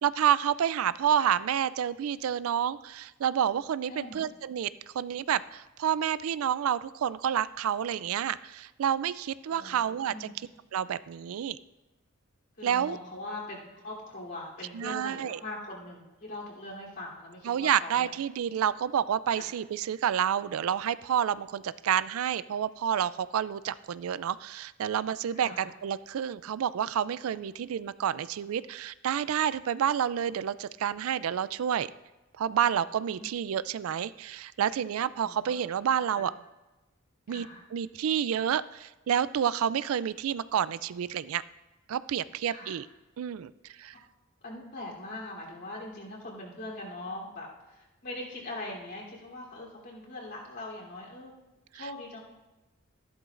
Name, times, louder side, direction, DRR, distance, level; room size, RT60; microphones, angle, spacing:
voice 1, 0.0-4.7 4.9-10.3 10.7-11.6 12.6-13.0 14.7-15.4 17.5-31.9 32.4-36.3 37.3-41.4 41.9-42.9 43.2-43.5 43.8-43.9 51.8-51.9, right 9 dB, 75° right, 17 dB, 0.3 m, -29 dB
voice 2, 3.9-4.2 9.5-9.8 10.1-10.4 12.6-18.1 19.4-19.5 25.3-25.7 33.2-33.3 35.2-35.4 36.1-36.3 37.3-37.6 42.5-42.8 44.4-51.3 51.7-52.2, left 2 dB, 55° left, -4 dB, 3.3 m, -41 dB
14.0 x 11.5 x 2.5 m, 1.0 s
head